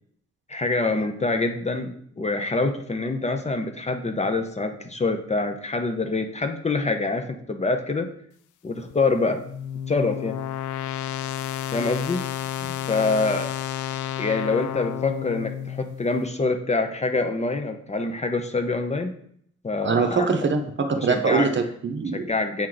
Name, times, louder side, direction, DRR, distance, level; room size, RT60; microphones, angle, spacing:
voice 1, 0.5-8.1 8.6-9.5 9.9-10.4 11.7-12.3 12.9-13.5 14.2-19.1 19.6-20.3 20.9-21.5 22.1-22.7, left 3 dB, 20° left, 5 dB, 0.7 m, -25 dB
sound 1, 8.9-16.0, left 11 dB, 80° left, 0.5 m, -31 dB
voice 2, 19.8-22.3, right 4 dB, 40° right, 6 dB, 0.9 m, -23 dB
8.6 x 3.1 x 3.9 m, 0.66 s
cardioid pair, 90°, 30 cm